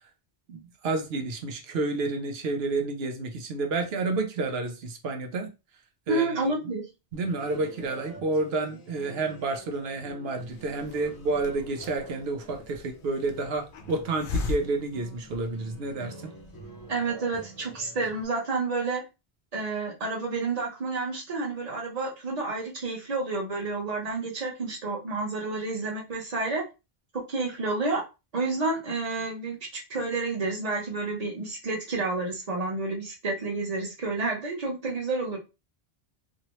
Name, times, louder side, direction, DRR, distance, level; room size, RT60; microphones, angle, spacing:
voice 1, 0.5-5.5 6.1-6.5 7.1-16.3, right 3 dB, 80° right, 0.9 m, -30 dB
voice 2, 6.1-6.9 16.9-19.0 19.5-26.6 27.3-28.0 28.3-35.4, right 3 dB, 40° right, 1.0 m, -30 dB
sound 1, 7.1-18.2, right 2 dB, 20° left, 0.8 m, -47 dB
Hiss, 10.4-15.9, left 4 dB, 65° left, 0.7 m, -38 dB
2.8 x 2.7 x 2.9 m
omnidirectional pair, 1.0 m